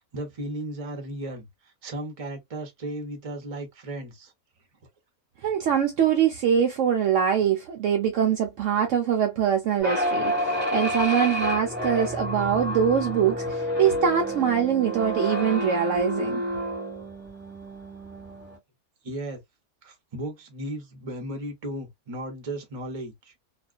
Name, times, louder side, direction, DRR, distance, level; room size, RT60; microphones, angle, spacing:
voice 1, 0.0-4.3 19.0-19.4 19.8-23.3, right 1 dB, 30° right, 0.8 m, -35 dB
voice 2, 5.4-16.4, right 8 dB, 65° right, 0.8 m, -23 dB
sound 1, 9.8-18.6, equal, 10° right, 1.2 m, -29 dB
2.4 x 2.4 x 2.2 m
omnidirectional pair, 1.5 m